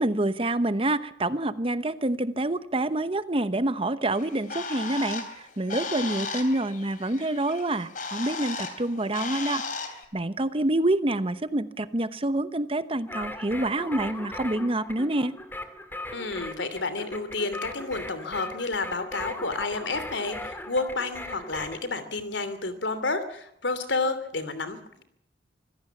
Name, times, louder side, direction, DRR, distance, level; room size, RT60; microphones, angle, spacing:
voice 1, 0.0-5.2 5.6-9.6 10.1-15.3, right 1 dB, 30° right, 13 dB, 1.0 m, -27 dB
Bird, 4.1-10.0, left 4 dB, 45° left, 3.3 m, -36 dB
sound 1, 13.1-21.8, left 1 dB, 10° left, 2.2 m, -38 dB
voice 2, 16.1-25.0, left 3 dB, 85° left, 12 dB, 3.1 m, -30 dB
25.5 x 16.5 x 7.2 m, 0.73 s
head